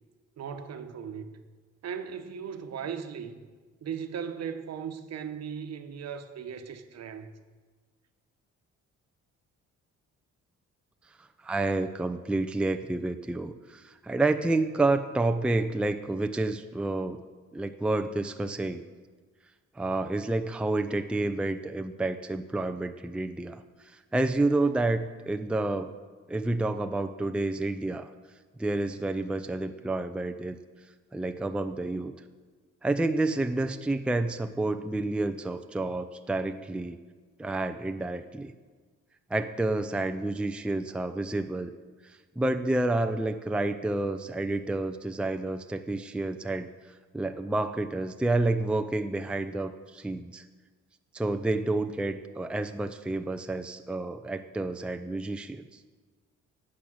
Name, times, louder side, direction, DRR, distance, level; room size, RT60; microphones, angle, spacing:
voice 1, 0.4-1.3 1.8-3.4 3.8-7.3, right 7 dB, 55° right, 1.1 m, -37 dB
voice 2, 11.2-17.2 17.5-18.8 19.8-25.9 26.3-28.1 28.6-30.6 31.1-32.1 32.8-37.0 37.4-38.5 39.3-41.7 42.0-46.7 47.1-50.4 51.1-55.6, right 2 dB, 5° right, 0.5 m, -29 dB
12.0 x 8.6 x 6.4 m
cardioid pair, 90°, 30 cm